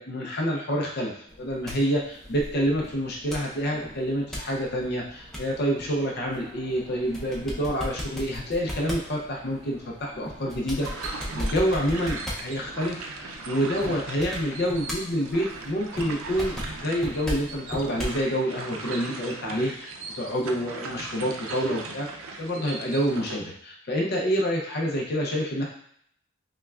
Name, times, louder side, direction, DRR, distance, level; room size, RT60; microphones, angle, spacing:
voice 1, 0.0-11.1 11.3-22.1 22.4-25.7, equal, 50° left, -1 dB, 0.5 m, -28 dB
sound 1, 1.3-18.2, equal, ahead, 0.6 m, -38 dB
sound 2, 10.7-23.4, right 3 dB, 75° right, 0.5 m, -38 dB
5.5 x 2.2 x 2.3 m, 0.67 s
head